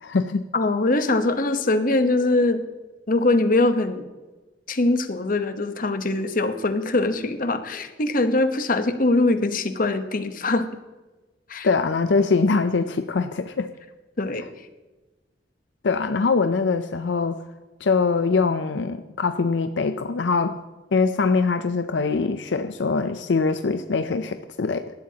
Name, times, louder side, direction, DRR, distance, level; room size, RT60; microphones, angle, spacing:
voice 1, 0.0-0.4 11.6-13.7 15.8-17.4 17.8-20.6 20.9-24.9, left 4 dB, 80° left, 9 dB, 0.5 m, -23 dB
voice 2, 0.5-2.6 3.1-4.1 4.7-10.7 11.5-11.7 14.2-14.5, left 2 dB, 50° left, 9 dB, 1.1 m, -22 dB
18.0 x 12.5 x 2.9 m, 1.2 s
head